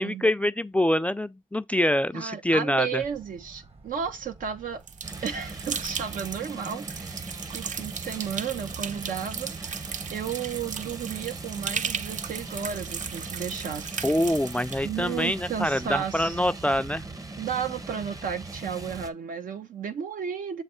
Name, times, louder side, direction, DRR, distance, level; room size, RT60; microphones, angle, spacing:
voice 1, 0.0-3.0 14.0-17.0, left 1 dB, 10° left, 0.3 m, -25 dB
voice 2, 2.1-4.8 5.2-9.8 10.1-14.0 14.8-16.4 17.4-20.6, right 7 dB, 85° right, 0.8 m, -33 dB
sound 1, 3.0-16.8, right 3 dB, 45° right, 1.2 m, -51 dB
sound 2, 4.9-14.8, right 7 dB, 65° right, 0.5 m, -36 dB
sound 3, 5.0-19.1, right 2 dB, 25° right, 0.7 m, -40 dB
6.9 x 3.3 x 4.2 m
cardioid pair, 65°, 14 cm